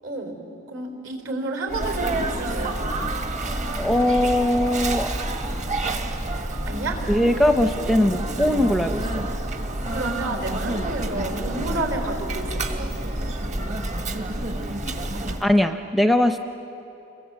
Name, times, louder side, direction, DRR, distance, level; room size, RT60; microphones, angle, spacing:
voice 1, 0.0-2.8 6.7-7.0 9.9-13.0 15.1-15.4, right 2 dB, 60° right, 5 dB, 4.1 m, -31 dB
Sneeze, 1.7-15.5, right 1 dB, 35° right, 1.4 m, -28 dB
voice 2, 3.8-5.1 7.1-9.3 15.4-16.4, left 1 dB, ahead, 7 dB, 0.6 m, -20 dB
29.5 x 23.0 x 7.6 m, 3.0 s
head